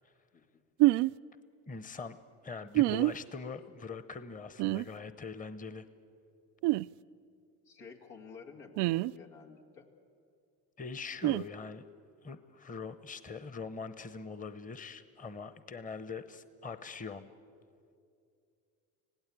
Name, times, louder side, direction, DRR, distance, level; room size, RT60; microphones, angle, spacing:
sound 1, 0.8-1.1 2.7-3.1 4.6-4.8 6.6-6.9 8.8-9.1 11.2-11.4, right 19 dB, 65° right, 0.5 m, -26 dB
voice 1, 1.7-2.2 2.4-5.9 10.8-11.8 12.2-17.3, left 4 dB, 15° left, 13 dB, 1.0 m, -42 dB
voice 2, 7.6-9.9, left 5 dB, 85° left, 1 dB, 2.4 m, -51 dB
26.0 x 17.0 x 8.5 m, 2.5 s
hypercardioid pair, 65°, 46 cm